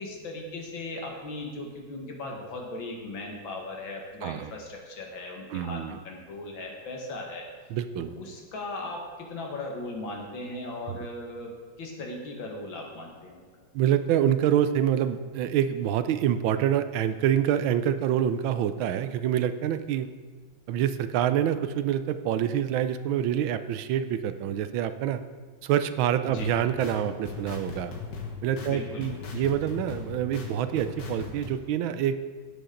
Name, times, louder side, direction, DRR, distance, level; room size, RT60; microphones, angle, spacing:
voice 1, 0.0-7.5 8.0-11.5 11.8-13.5 26.2-26.5 28.6-29.3, left 2 dB, 75° left, 0 dB, 2.4 m, -38 dB
voice 2, 5.5-6.0 7.7-8.1 13.7-20.1 20.7-25.2 25.6-27.9 28.4-32.2, right 10 dB, 85° right, 11 dB, 1.4 m, -26 dB
sound 1, 26.2-31.5, left 5 dB, 55° left, 1.8 m, -39 dB
16.5 x 7.1 x 3.8 m, 1.5 s
omnidirectional pair, 2.2 m